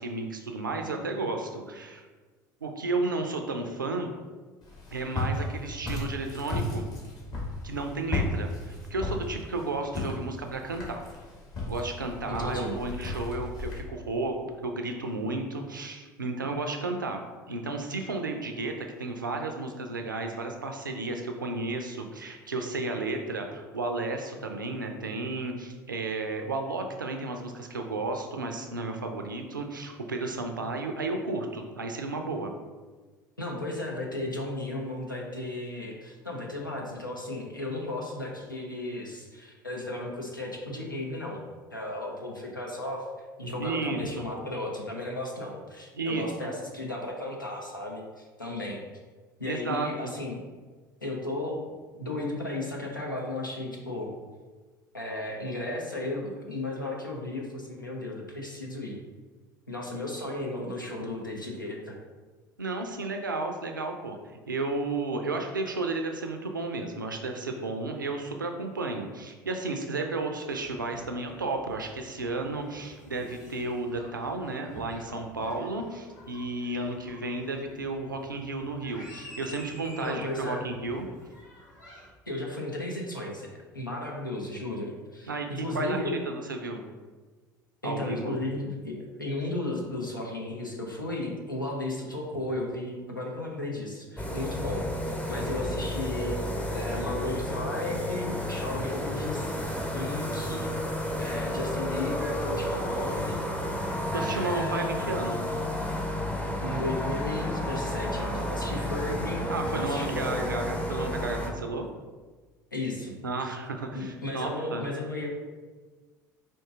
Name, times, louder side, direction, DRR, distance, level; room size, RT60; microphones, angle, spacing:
voice 1, 0.0-2.0 2.6-4.1 4.9-6.9 7.6-11.0 11.7-14.3 14.6-32.5 43.6-44.3 45.9-46.5 49.4-50.1 62.6-81.1 85.2-86.8 87.8-88.3 104.1-105.4 109.5-111.9 113.2-114.8, right 3 dB, 85° right, 4 dB, 0.4 m, -33 dB
Walk footsteps, 4.6-13.8, left 2 dB, 40° left, 1.4 m, -35 dB
voice 2, 12.3-12.8 33.4-41.4 41.7-43.0 43.4-48.8 49.4-50.4 51.0-54.1 54.9-59.0 59.7-62.0 80.0-80.6 82.3-86.2 87.8-94.9 95.3-96.4 96.7-103.4 104.1-104.9 106.6-109.4 109.7-110.6 112.7-113.2 113.9-115.3, left 2 dB, 90° left, -1 dB, 0.6 m, -34 dB
sound 1, 70.5-82.1, left 1 dB, 60° left, 1.4 m, -50 dB
sound 2, 94.2-111.5, left 1 dB, 15° left, 0.6 m, -31 dB
4.5 x 2.6 x 3.5 m, 1.4 s
figure-of-eight pair, 65°, 10 cm